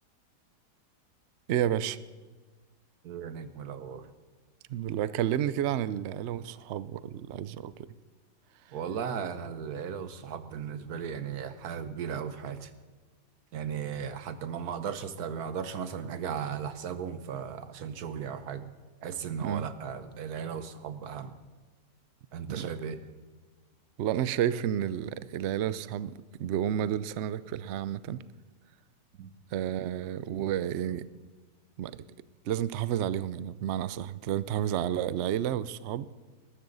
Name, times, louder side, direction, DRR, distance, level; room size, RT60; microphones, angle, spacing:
voice 1, 1.5-2.0 4.7-7.7 19.4-19.7 22.5-22.7 24.0-28.2 29.5-31.0 31.8-32.0 32.5-36.1, right 10 dB, 90° right, 16 dB, 0.6 m, -31 dB
voice 2, 3.0-4.1 8.7-12.7 13.5-18.7 19.0-21.4 22.3-23.0 29.2-29.3, right 7 dB, 65° right, 11 dB, 1.4 m, -36 dB
21.0 x 12.5 x 4.0 m, 1.4 s
omnidirectional pair, 1.8 m